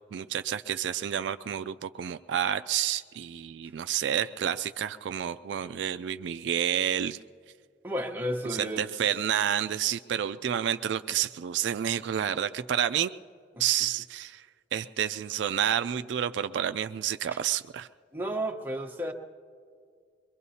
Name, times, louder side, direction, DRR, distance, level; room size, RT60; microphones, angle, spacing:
voice 1, 0.1-7.2 8.5-13.1 13.6-14.4 14.7-17.9, right 9 dB, 75° right, 11 dB, 0.3 m, -29 dB
voice 2, 7.8-8.9 17.3-17.4 18.1-19.1, equal, 10° right, 1 dB, 0.9 m, -32 dB
23.0 x 23.0 x 2.8 m, 2.2 s
head